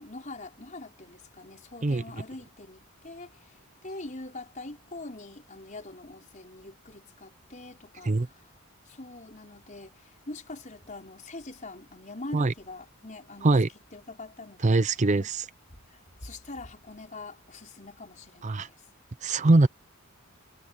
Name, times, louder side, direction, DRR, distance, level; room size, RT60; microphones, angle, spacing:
voice 1, 0.0-8.5 8.9-13.6 13.9-14.8 15.2-15.3 15.9-18.8, left 2 dB, 35° left, 5.1 m, -43 dB
voice 2, 14.6-15.5 18.4-18.7 19.2-19.7, right 2 dB, 35° right, 0.5 m, -22 dB
head